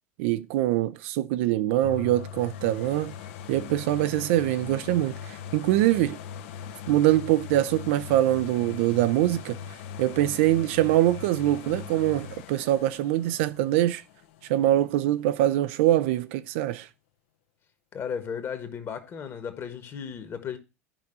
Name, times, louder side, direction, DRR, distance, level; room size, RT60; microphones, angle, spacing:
voice 1, 0.2-3.1 3.5-6.2 6.9-9.6 10.0-14.0 14.5-16.9, right 14 dB, 50° right, 0.4 m, -24 dB
sound 1, 1.8-15.5 16.0-16.1, left 8 dB, 55° left, 0.6 m, -40 dB
voice 2, 17.9-20.6, left 7 dB, 30° left, 1.4 m, -35 dB
15.0 x 5.2 x 2.6 m
figure-of-eight pair, 80°, 8 cm